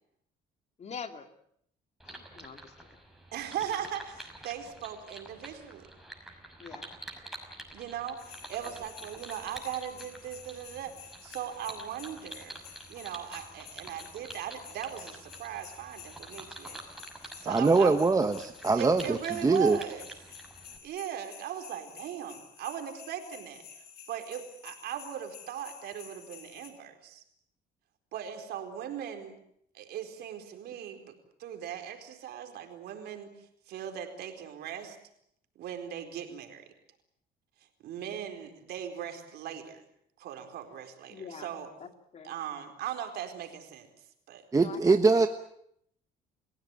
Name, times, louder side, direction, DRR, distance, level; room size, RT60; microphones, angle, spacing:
voice 1, 0.8-1.3 2.0-2.9 6.6-6.8 41.1-42.3 44.5-45.0, left 6 dB, 40° left, 7 dB, 2.6 m, -44 dB
sound 1, 2.0-20.8, right 1 dB, ahead, 6.0 m, -48 dB
voice 2, 3.3-5.9 7.7-12.6 12.9-16.8 17.4-18.1 18.7-20.1 20.8-27.2 28.1-29.4 29.7-35.0 35.6-36.6 37.8-39.8 40.2-41.7 42.2-43.9 44.3-44.5, right 9 dB, 75° right, 6 dB, 4.4 m, -39 dB
sound 2, 8.2-26.7, left 7 dB, 70° left, 5.2 m, -51 dB
voice 3, 17.5-19.8 44.5-45.3, right 3 dB, 20° right, 7 dB, 1.2 m, -23 dB
29.0 x 16.5 x 9.0 m, 0.72 s
cardioid pair, 110°, 17 cm